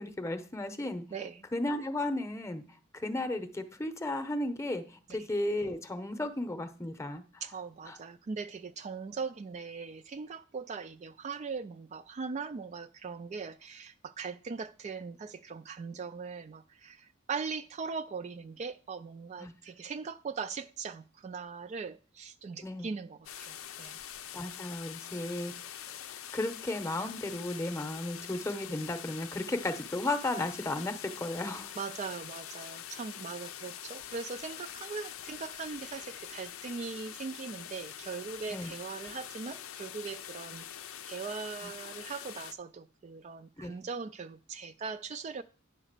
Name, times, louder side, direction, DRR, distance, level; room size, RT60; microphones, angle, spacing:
voice 1, 0.0-1.0 1.5-2.6 2.9-7.4 7.9-8.0 19.4-19.5 22.6-22.9 24.3-26.1 26.3-31.7 38.5-38.7 43.6-43.7, left 2 dB, 15° left, 8 dB, 0.8 m, -34 dB
voice 2, 1.1-1.4 5.2-5.3 7.4-24.0 31.8-40.6 41.0-45.4, right 5 dB, 35° right, 10 dB, 0.3 m, -40 dB
sound 1, 23.3-42.5, left 10 dB, 90° left, 0.5 m, -44 dB
9.9 x 3.9 x 6.6 m, 0.37 s
head